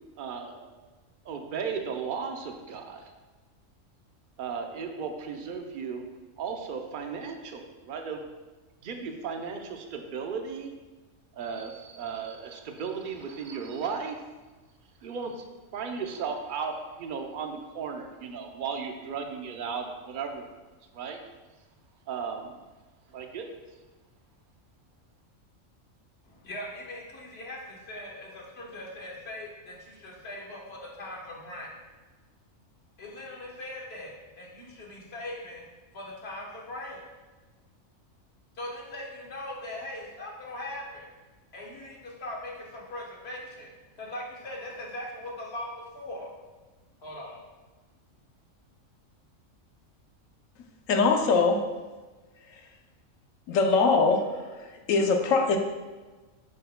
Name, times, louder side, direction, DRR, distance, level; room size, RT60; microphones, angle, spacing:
voice 1, 0.2-0.7 1.2-3.1 4.4-6.1 6.4-8.3 8.8-10.7 11.3-14.3 15.0-15.5 15.7-20.5 20.9-21.2 22.1-22.5 23.1-23.5, right 5 dB, 50° right, 4 dB, 0.7 m, -35 dB
voice 2, 26.2-31.7 33.0-35.6 35.9-37.0 38.5-41.1 41.5-43.7 44.0-46.3 47.0-47.4, left 1 dB, 55° left, -2 dB, 1.4 m, -40 dB
voice 3, 50.9-51.6 52.5-52.6 53.5-55.6, left 4 dB, 80° left, 4 dB, 1.1 m, -23 dB
9.6 x 4.5 x 2.2 m, 1.3 s
omnidirectional pair, 1.4 m